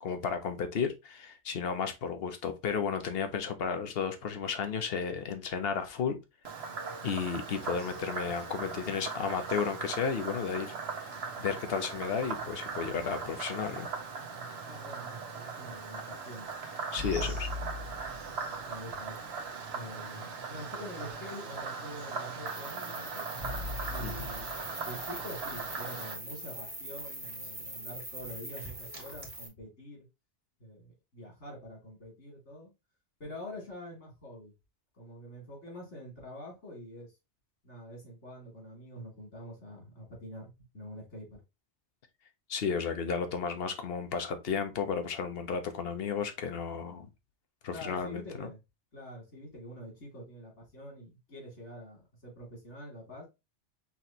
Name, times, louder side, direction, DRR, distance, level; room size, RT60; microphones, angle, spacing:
voice 1, 0.0-6.2 7.0-11.1 11.4-13.9 16.9-17.5 24.0-24.3 42.5-47.1 47.6-48.5, left 6 dB, 60° left, 1.0 m, -33 dB
Frog, 6.5-26.1, right 5 dB, 65° right, 1.1 m, -39 dB
voice 2, 14.6-16.5 17.1-17.4 18.7-19.2 19.7-23.2 23.9-24.5 24.8-30.0 30.6-32.7 33.2-34.5 34.9-37.1 37.6-41.4 47.7-48.6 48.9-53.2, equal, 80° left, 3.2 m, -46 dB
sound 1, 17.0-19.1 23.4-26.6, left 3 dB, 85° right, 1.6 m, -41 dB
sound 2, 22.5-29.5, right 1 dB, 20° right, 1.3 m, -43 dB
5.9 x 3.1 x 2.9 m
omnidirectional pair, 1.2 m